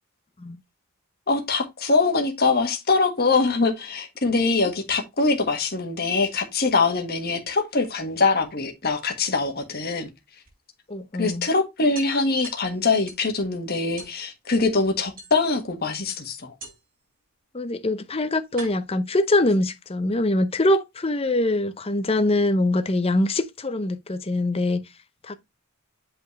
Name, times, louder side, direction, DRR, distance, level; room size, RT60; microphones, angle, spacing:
voice 1, 1.3-10.1 11.2-16.5, left 3 dB, 45° left, 1.5 m, -23 dB
sound 1, 7.9-9.0 10.5-10.6 10.9-11.0 11.3-11.4 11.9-13.3 14.0-14.2 15.2-15.7 16.6-17.0 17.9-18.0 18.6-19.9, right 2 dB, 40° right, 5.0 m, -43 dB
voice 2, 10.9-11.5 17.5-24.8 25.2-25.3, left 1 dB, 25° left, 0.7 m, -23 dB
8.2 x 4.3 x 3.1 m
head